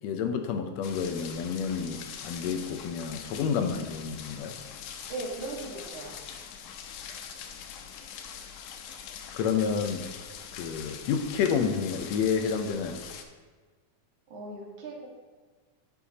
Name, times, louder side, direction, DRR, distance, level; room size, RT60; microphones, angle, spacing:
voice 1, 0.0-4.6 9.3-10.1 10.6-13.0, left 6 dB, 75° left, 6 dB, 1.7 m, -29 dB
sound 1, 0.8-13.2, left 8 dB, 90° left, 2.2 m, -43 dB
voice 2, 5.1-6.2 8.0-8.2 14.3-15.1, right 2 dB, 70° right, -3 dB, 3.1 m, -38 dB
11.0 x 8.3 x 2.9 m, 1.4 s
omnidirectional pair, 3.6 m